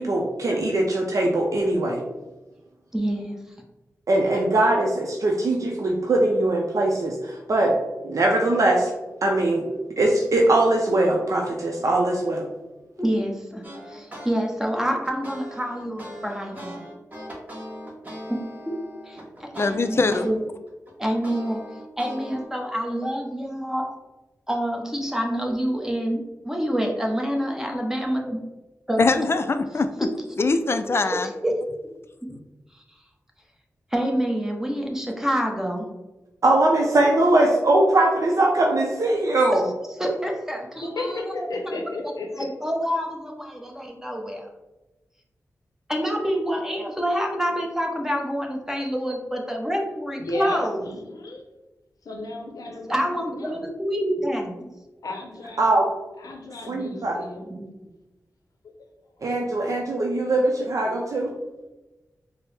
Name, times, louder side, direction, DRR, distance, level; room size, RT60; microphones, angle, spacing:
voice 1, 0.0-2.0 4.1-7.7 8.0-8.9 9.2-9.7 10.0-12.5 36.4-39.6 55.6-55.9 56.7-57.1 59.2-61.3, right 2 dB, 65° right, 0 dB, 0.5 m, -21 dB
voice 2, 2.9-3.4 9.7-9.8 13.0-13.6 13.9-16.8 18.3-18.4 18.7-18.8 19.0-20.4 21.0-21.6 22.0-23.9 24.5-28.4 28.9-29.0 30.0-30.1 31.1-31.5 32.2-32.4 33.9-35.9 39.5-39.6 39.9-42.1 42.4-44.5 45.9-50.9 52.9-54.7 57.5-57.6, equal, 10° right, 1 dB, 0.8 m, -27 dB
sound 1, 13.6-14.3 14.7-20.3 20.7-22.4, equal, 25° right, 1.1 m, -39 dB
voice 3, 19.6-20.3 29.0-30.1 30.4-31.3, left 3 dB, 45° left, 9 dB, 0.3 m, -22 dB
voice 4, 40.8-42.5 50.2-51.4 52.0-53.6 55.0-55.6 56.2-57.5 58.6-58.7, left 2 dB, 85° left, 2 dB, 0.6 m, -33 dB
4.3 x 2.0 x 3.3 m, 1.1 s
cardioid pair, 50°, 6 cm